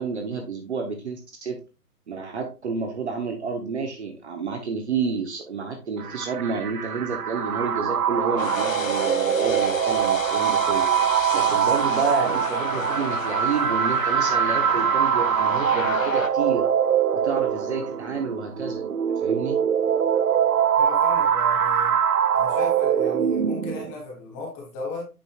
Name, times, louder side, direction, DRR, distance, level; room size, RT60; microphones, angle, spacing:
voice 1, 0.0-1.6 2.1-16.6 17.1-18.8 19.2-19.6, right 5 dB, 45° right, 4 dB, 1.2 m, -30 dB
sound 1, 6.0-23.9, right 8 dB, 65° right, 0.8 m, -23 dB
sound 2, 8.4-16.3, left 6 dB, 55° left, 0.8 m, -34 dB
voice 2, 20.8-21.9 22.3-25.1, left 3 dB, 10° left, -2 dB, 1.0 m, -36 dB
9.0 x 5.4 x 2.4 m, 0.29 s
figure-of-eight pair, 140°, 47 cm